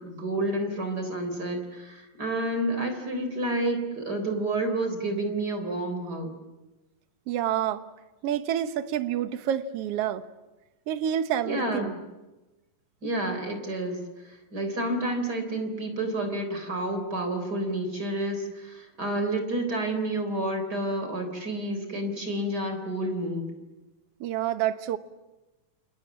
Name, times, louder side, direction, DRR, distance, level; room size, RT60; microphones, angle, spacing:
voice 1, 0.0-6.3 11.4-12.0 13.0-23.5, right 1 dB, 30° right, 4.2 m, -30 dB
voice 2, 7.3-7.8 8.2-10.2 10.9-12.0 24.2-25.0, right 10 dB, 60° right, 1.7 m, -28 dB
28.0 x 27.0 x 7.4 m
omnidirectional pair, 3.9 m